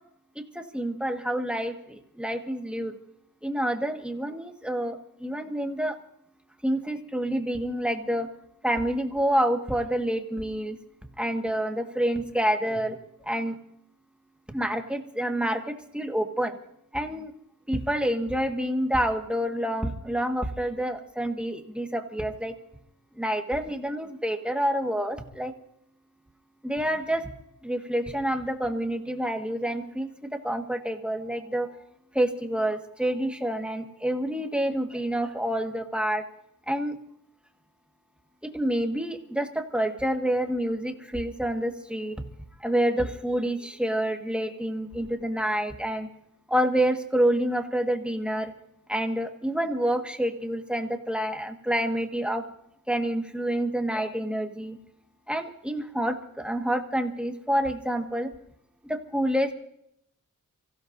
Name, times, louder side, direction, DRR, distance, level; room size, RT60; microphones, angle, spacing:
voice 1, 0.3-2.9 3.4-6.0 6.6-8.3 8.6-10.8 11.2-13.0 13.2-13.5 14.5-16.6 16.9-17.3 17.7-22.5 23.2-25.5 26.6-27.3 27.6-31.7 32.1-36.2 36.7-36.9 38.4-42.2 42.6-46.1 46.5-48.5 48.9-52.4 52.9-54.8 55.3-58.3 58.8-59.5, right 1 dB, 5° right, 4 dB, 1.7 m, -28 dB
30.0 x 16.0 x 2.7 m, 0.74 s
wide cardioid pair, 80°, 33 cm